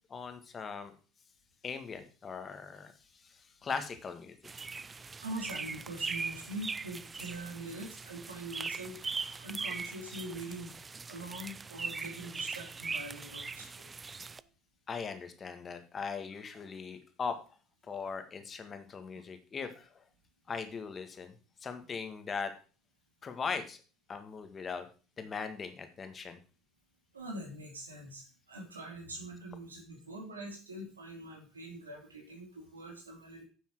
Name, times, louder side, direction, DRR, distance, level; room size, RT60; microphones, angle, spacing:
voice 1, 0.1-0.9 1.6-2.9 3.2-4.4 14.9-17.4 17.9-20.0 20.5-21.3 21.6-22.5 23.2-23.8 24.1-24.9 25.2-26.4, left 5 dB, 35° left, 8 dB, 1.8 m, -39 dB
sound 1, 4.4-14.4, right 4 dB, 25° right, 0.4 m, -40 dB
voice 2, 4.8-10.7 11.1-13.9 14.2-14.5 16.1-16.2 27.1-33.4, right 1 dB, 90° right, 1 dB, 2.7 m, -44 dB
9.8 x 7.0 x 4.7 m, 0.36 s
hypercardioid pair, 65°, 0 cm